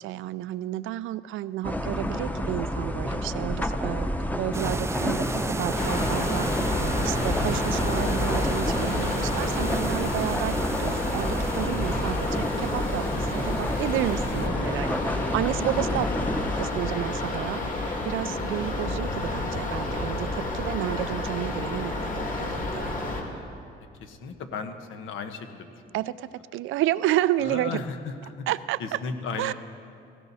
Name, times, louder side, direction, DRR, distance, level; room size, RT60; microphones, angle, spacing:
voice 1, 0.0-4.1 4.4-16.1 16.6-22.9 25.9-27.8 28.5-29.0 29.4-29.5, right 14 dB, 85° right, 17 dB, 0.4 m, -31 dB
sound 1, 1.6-16.7, equal, 10° left, 0.9 m, -30 dB
sound 2, 4.5-14.5, right 3 dB, 15° right, 0.4 m, -34 dB
sound 3, 5.7-23.2, left 2 dB, 45° left, 2.8 m, -30 dB
voice 2, 14.4-14.7 15.9-16.5 24.0-25.7 27.4-28.3 28.8-29.5, left 5 dB, 85° left, 6 dB, 1.3 m, -35 dB
17.0 x 16.5 x 4.2 m, 2.4 s
cardioid pair, 90°, 20 cm